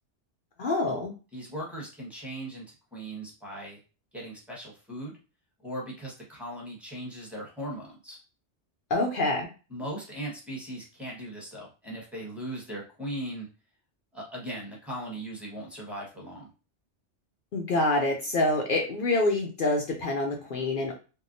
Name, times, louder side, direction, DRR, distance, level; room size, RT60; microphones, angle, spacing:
voice 1, 0.6-1.1 8.9-9.5 17.5-21.0, left 2 dB, 60° left, 1 dB, 0.6 m, -26 dB
voice 2, 1.3-2.6 2.9-3.8 4.1-5.1 5.6-8.2 9.7-13.5 14.1-16.5, right 1 dB, ahead, -4 dB, 1.0 m, -38 dB
3.5 x 2.2 x 2.5 m, 0.34 s
omnidirectional pair, 1.2 m